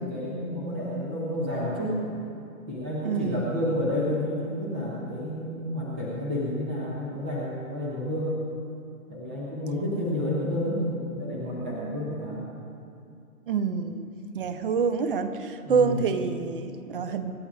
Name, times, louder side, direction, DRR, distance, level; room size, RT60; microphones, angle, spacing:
voice 1, 0.0-2.1 2.7-8.4 9.1-12.5 15.6-16.0, left 1 dB, 10° right, -6 dB, 0.4 m, -30 dB
voice 2, 3.0-3.5 13.5-14.1 14.3-17.3, right 5 dB, 40° right, 9 dB, 0.7 m, -27 dB
25.5 x 11.5 x 2.4 m, 2.5 s
hypercardioid pair, 150°, 44 cm